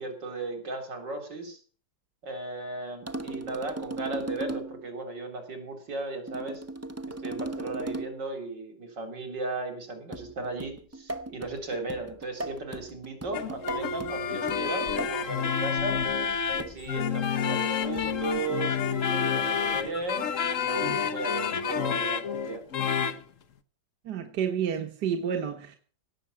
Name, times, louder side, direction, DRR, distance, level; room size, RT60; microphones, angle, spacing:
voice 1, 0.0-1.6 2.2-6.6 7.2-16.0 16.5-22.6, right 3 dB, 90° right, 4.4 m, -36 dB
sound 1, 3.1-4.9 6.3-8.3 10.1-15.3 16.6-17.0 18.0-18.3, right 2 dB, 20° right, 0.4 m, -38 dB
sound 2, 13.3-23.2, left 7 dB, 50° left, 1.3 m, -29 dB
voice 2, 24.1-25.8, right 7 dB, 70° right, 1.9 m, -30 dB
17.5 x 6.9 x 8.5 m
omnidirectional pair, 1.9 m